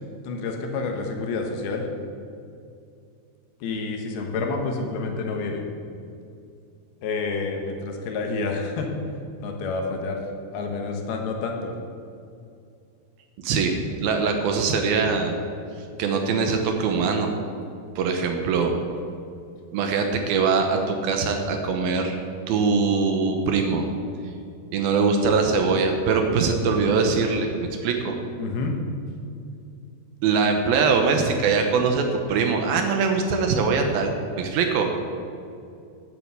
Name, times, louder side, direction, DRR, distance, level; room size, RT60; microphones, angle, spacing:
voice 1, 0.2-1.9 3.6-5.6 7.0-8.9 9.4-10.2 10.5-11.7 28.4-28.8, left 3 dB, 75° left, 2 dB, 3.0 m, -28 dB
voice 2, 13.4-15.4 16.0-17.3 18.0-18.7 19.7-22.2 22.5-23.9 24.7-28.2 30.2-32.0 32.3-34.1 34.4-34.9, right 5 dB, 70° right, 4 dB, 2.6 m, -22 dB
9.6 x 8.4 x 8.1 m, 2.5 s
omnidirectional pair, 4.8 m